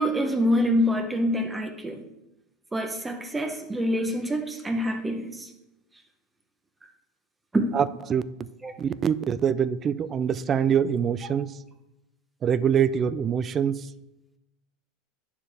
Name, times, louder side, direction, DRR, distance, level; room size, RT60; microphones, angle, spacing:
voice 1, 0.0-2.0 2.7-5.5 7.5-7.7 8.6-8.7, equal, 15° right, 4 dB, 0.9 m, -26 dB
voice 2, 7.7-8.2 8.8-11.5 12.4-13.9, right 8 dB, 35° right, 16 dB, 0.4 m, -24 dB
9.2 x 6.7 x 3.4 m, 0.95 s
supercardioid pair, 110°, 0 cm